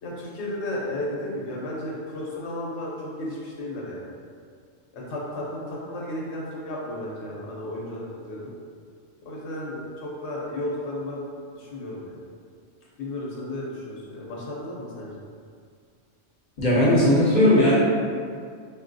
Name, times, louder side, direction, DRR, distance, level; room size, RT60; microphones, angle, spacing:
voice 1, 0.0-4.0 4.9-8.5 9.2-11.2 11.5-12.1 13.0-15.2, left 1 dB, 70° left, -4 dB, 1.0 m, -33 dB
voice 2, 16.6-17.7, left 1 dB, 45° left, -7 dB, 0.8 m, -18 dB
4.1 x 2.2 x 2.6 m, 2.2 s
omnidirectional pair, 1.3 m